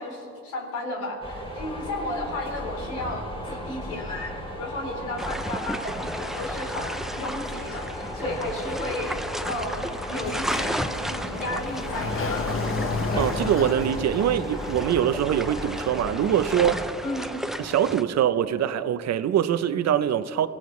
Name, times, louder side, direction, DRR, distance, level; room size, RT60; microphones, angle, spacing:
voice 1, 0.0-9.2 9.4-12.6 17.0-17.4, left 1 dB, 85° left, 3.6 m, -33 dB
sound 1, 1.2-16.9, equal, 20° left, 2.8 m, -35 dB
sound 2, 5.2-18.0, equal, ahead, 0.6 m, -34 dB
Sliding door, 10.2-15.2, left 3 dB, 45° left, 1.2 m, -32 dB
voice 2, 13.2-16.9 17.6-20.5, right 10 dB, 60° right, 0.7 m, -23 dB
24.5 x 16.5 x 3.2 m
cardioid pair, 90°, 30 cm